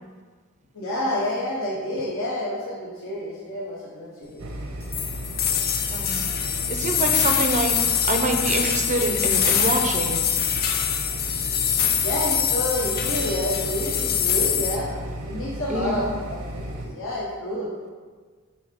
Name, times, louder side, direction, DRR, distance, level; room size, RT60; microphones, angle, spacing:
voice 1, 0.7-4.4 12.0-15.0 15.2-17.7, left 1 dB, 60° left, -5 dB, 0.9 m, -29 dB
sound 1, 4.4-16.9, right 1 dB, 80° right, 0.8 m, -34 dB
sound 2, 4.9-14.8, left 8 dB, 45° left, 0.4 m, -24 dB
voice 2, 5.9-6.2 6.7-10.2 15.7-16.0, right 2 dB, 30° right, 4 dB, 0.5 m, -26 dB
7.1 x 2.8 x 5.1 m, 1.5 s
head